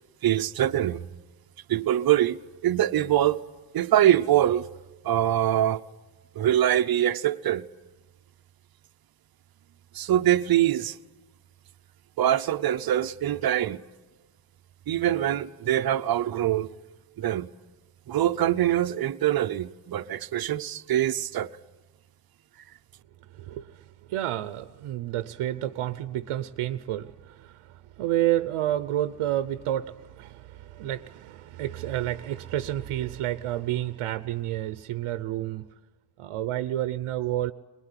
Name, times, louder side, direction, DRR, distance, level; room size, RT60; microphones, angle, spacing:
voice 1, 0.2-1.1 1.7-3.4 3.7-4.7 5.0-5.8 6.3-7.7 9.9-11.0 12.2-13.8 14.9-16.7 17.2-17.5 18.1-21.5, right 12 dB, 45° right, 0.8 m, -24 dB
voice 2, 23.3-35.7 36.2-37.5, right 13 dB, 90° right, 0.9 m, -30 dB
23.0 x 20.5 x 9.8 m
cardioid pair, 155°, 49 cm